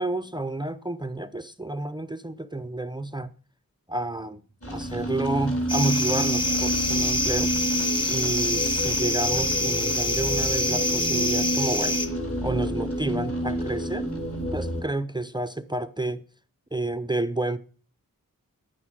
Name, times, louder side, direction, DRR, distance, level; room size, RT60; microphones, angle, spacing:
voice 1, 0.0-3.3 3.9-4.4 4.7-7.5 8.1-12.0 12.4-14.1 14.5-16.2 16.7-17.6, right 2 dB, 10° right, 0.6 m, -30 dB
sound 1, 4.6-14.8, equal, 40° left, 3.9 m, -29 dB
sound 2, 5.7-12.1, left 1 dB, 15° left, 1.6 m, -26 dB
10.5 x 9.3 x 6.3 m
wide cardioid pair, 85°, 36 cm